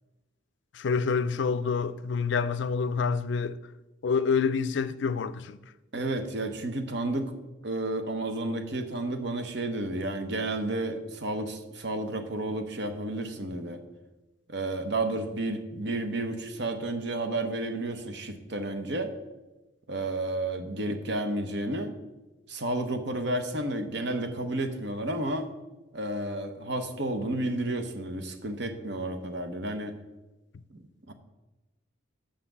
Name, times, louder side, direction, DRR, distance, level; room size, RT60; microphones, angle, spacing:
voice 1, 0.7-3.6 4.0-5.6, left 5 dB, 60° left, 0.4 m, -27 dB
voice 2, 5.9-7.3 7.6-13.8 14.5-19.1 19.9-21.9 22.5-25.5 25.9-30.0 30.7-31.1, right 2 dB, 55° right, 0.9 m, -31 dB
6.6 x 5.7 x 7.2 m
head